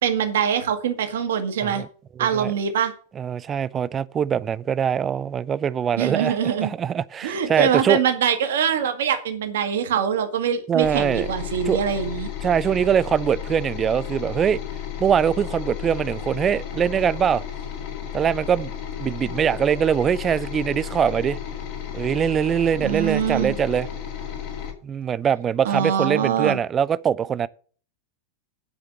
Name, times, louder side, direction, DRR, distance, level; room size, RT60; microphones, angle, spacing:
voice 1, 0.0-1.8 2.2-2.9 6.0-6.7 7.2-12.3 22.8-23.5 25.6-26.6, right 8 dB, 60° right, 1.6 m, -23 dB
voice 2, 2.2-2.5 3.2-8.0 10.7-11.3 11.7-11.8 12.4-14.6 15.0-17.4 18.1-18.7 19.0-21.4 21.9-23.9 24.8-27.5, right 8 dB, 25° right, 0.4 m, -22 dB
sound 1, 10.8-24.7, left 9 dB, 50° left, 2.5 m, -33 dB
9.7 x 5.0 x 7.3 m
figure-of-eight pair, 90°, 0 cm